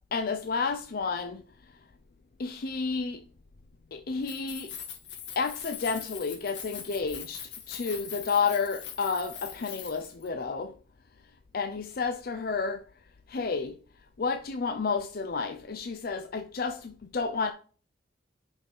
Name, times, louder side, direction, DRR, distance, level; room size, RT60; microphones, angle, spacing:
voice 1, 0.1-1.4 2.4-3.2 3.9-4.7 5.4-10.8 11.5-12.8 13.3-13.8 14.2-17.5, left 5 dB, 55° left, 0.5 m, -31 dB
Keys jangling, 4.2-10.3, left 8 dB, 70° left, 1.9 m, -42 dB
5.4 x 5.4 x 4.6 m
head